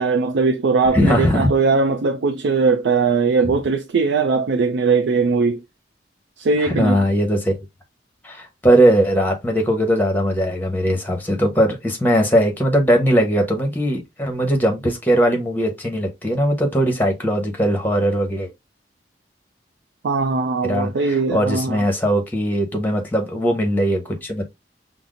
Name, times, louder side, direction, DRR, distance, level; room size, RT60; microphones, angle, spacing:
voice 1, 0.0-5.6 6.4-7.0 20.0-21.8, right 4 dB, 90° right, 0.4 m, -19 dB
voice 2, 0.9-1.5 6.6-7.6 8.2-18.5 20.6-24.5, equal, 10° left, 0.9 m, -19 dB
5.6 x 2.0 x 2.4 m
head